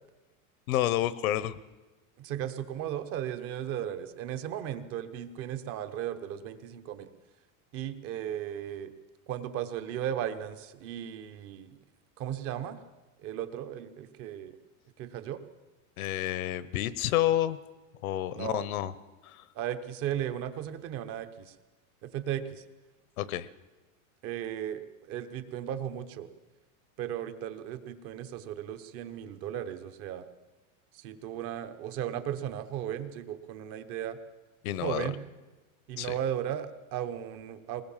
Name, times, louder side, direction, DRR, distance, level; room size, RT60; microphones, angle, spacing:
voice 1, 0.7-1.6 16.0-17.6 18.0-18.9 19.2-19.4 23.2-23.5 34.6-35.1 36.0-36.1, left 13 dB, 75° left, 17 dB, 1.1 m, -29 dB
voice 2, 2.2-7.1 7.7-8.9 9.3-11.8 12.2-12.8 13.2-14.6 15.0-15.4 18.3-18.7 19.5-21.5 22.0-22.6 24.2-26.3 27.0-30.3 30.9-34.2 34.8-35.2 35.9-37.8, right 10 dB, 30° right, 11 dB, 1.2 m, -36 dB
20.5 x 19.5 x 7.4 m, 1.2 s
supercardioid pair, 170°, 43 cm